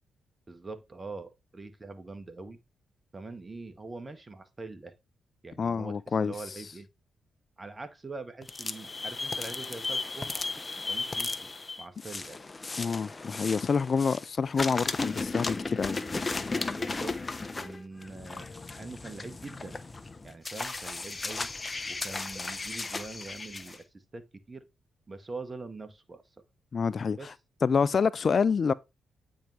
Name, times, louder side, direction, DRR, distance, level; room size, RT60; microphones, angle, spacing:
voice 1, 0.5-2.6 3.1-4.9 5.4-6.9 7.6-10.4 10.9-11.5 11.8-12.4 16.8-17.2 17.5-18.5 18.7-19.8 20.2-21.5 21.9-23.8 24.1-24.6 25.1-26.2 27.1-27.3, right 3 dB, 30° right, 1.6 m, -43 dB
voice 2, 5.6-6.3 12.8-16.0 26.7-27.3 27.6-28.7, left 5 dB, 50° left, 0.4 m, -27 dB
sound 1, 8.4-14.3 14.5-23.8, left 3 dB, 35° left, 0.9 m, -35 dB
8.9 x 5.4 x 3.3 m
hypercardioid pair, 40°, 0 cm